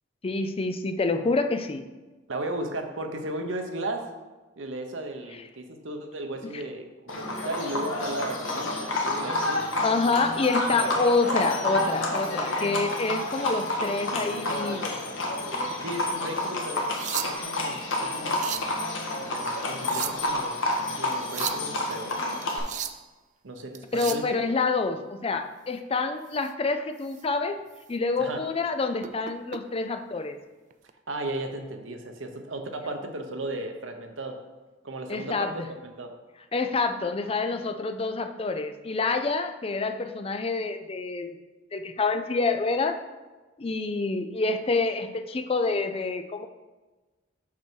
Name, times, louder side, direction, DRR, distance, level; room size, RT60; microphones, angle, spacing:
voice 1, 0.2-1.9 6.5-6.6 9.8-15.0 23.9-27.6 27.9-30.4 35.1-35.7 36.5-41.4 41.7-43.0 43.6-46.5, left 3 dB, 30° left, 8 dB, 0.5 m, -27 dB
voice 2, 2.3-4.0 4.6-9.6 10.0-10.1 10.8-10.9 15.8-16.8 17.1-18.8 19.2-22.2 23.4-24.3 28.2-28.4 31.1-34.4 34.8-35.4 35.8-36.1, right 1 dB, 80° right, 4 dB, 0.9 m, -35 dB
Livestock farm animals working animals, 7.1-22.6, left 1 dB, 85° left, 1.4 m, -29 dB
sound 1, 16.7-17.6 18.1-18.7 19.6-20.4 21.1-21.7 22.4-23.1 23.8-24.3 26.3-26.5 27.0-27.2 27.7-27.8 29.0-29.6 30.7-30.9, right 10 dB, 40° right, 0.4 m, -35 dB
6.0 x 5.9 x 4.6 m, 1.2 s
head